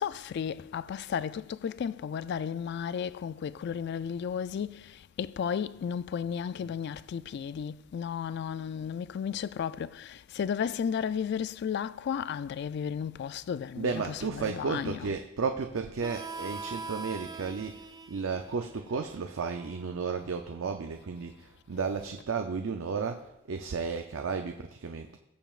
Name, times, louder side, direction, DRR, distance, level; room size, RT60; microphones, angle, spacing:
voice 1, 0.0-15.1 21.7-21.8, left 7 dB, 55° left, 0.3 m, -34 dB
voice 2, 13.8-23.2 23.5-25.2, right 5 dB, 75° right, 0.5 m, -33 dB
Harmonica, 16.0-21.3, right 3 dB, 20° right, 0.4 m, -44 dB
20.5 x 7.0 x 2.4 m
head